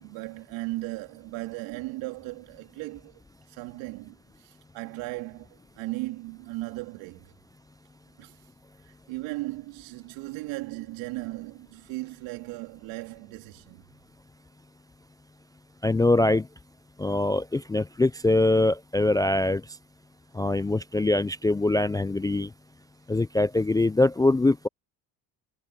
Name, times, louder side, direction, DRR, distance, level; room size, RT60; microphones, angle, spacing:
voice 1, 0.0-3.2 3.5-7.3 8.2-8.4 8.8-13.9, right 21 dB, 80° right, 3.7 m, -37 dB
voice 2, 15.8-16.5 17.0-19.6 20.3-22.5 23.1-24.7, left 2 dB, 10° left, 0.3 m, -23 dB
supercardioid pair, 85°, 45 cm